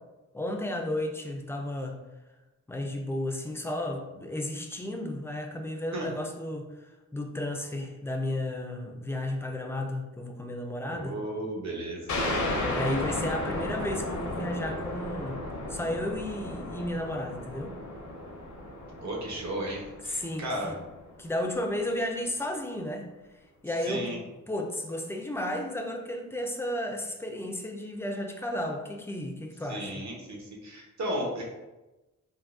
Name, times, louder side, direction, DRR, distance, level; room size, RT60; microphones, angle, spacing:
voice 1, 0.3-2.0 2.7-6.7 7.1-11.2 12.7-15.4 15.7-17.8 20.1-20.8 21.2-23.1 23.6-24.1 24.5-29.9, left 1 dB, 10° left, 2 dB, 0.3 m, -33 dB
voice 2, 10.9-12.3 19.0-20.7 23.9-24.2 29.7-31.7, right 1 dB, 60° right, -2 dB, 0.9 m, -35 dB
sound 1, 12.1-21.3, left 1 dB, 65° left, 0.7 m, -34 dB
3.7 x 2.5 x 2.5 m, 1.1 s
wide cardioid pair, 110°, 31 cm